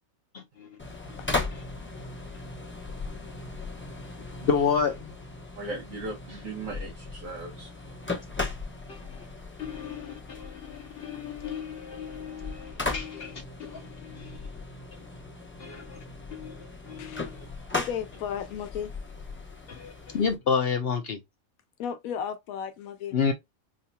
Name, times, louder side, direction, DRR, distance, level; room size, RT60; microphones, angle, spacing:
voice 1, 0.3-0.7 1.3-1.6 4.4-5.1 8.9-9.2 9.6-14.4 15.6-16.0 16.3-17.5 19.7-21.2 23.1-23.3, left 6 dB, 60° left, 0.6 m, -31 dB
sound 1, 0.8-20.4, left 3 dB, 10° left, 0.7 m, -38 dB
voice 2, 5.5-7.7, right 2 dB, 65° right, 1.5 m, -37 dB
voice 3, 17.7-18.9 21.8-23.2, left 8 dB, 75° left, 1.0 m, -34 dB
4.8 x 2.8 x 2.2 m
omnidirectional pair, 1.5 m